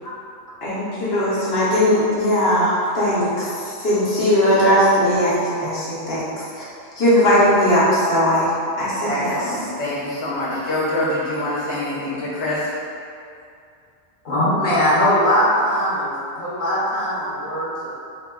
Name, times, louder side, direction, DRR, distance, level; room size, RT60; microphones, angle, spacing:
voice 1, 0.6-6.3 6.5-6.6 7.0-8.5 8.8-9.4, equal, 70° left, -9 dB, 1.1 m, -18 dB
voice 2, 9.0-12.7, left 1 dB, 30° left, -9 dB, 0.8 m, -25 dB
voice 3, 14.2-17.9, equal, 50° left, -9 dB, 1.1 m, -20 dB
3.5 x 2.2 x 3.6 m, 2.5 s
omnidirectional pair, 1.1 m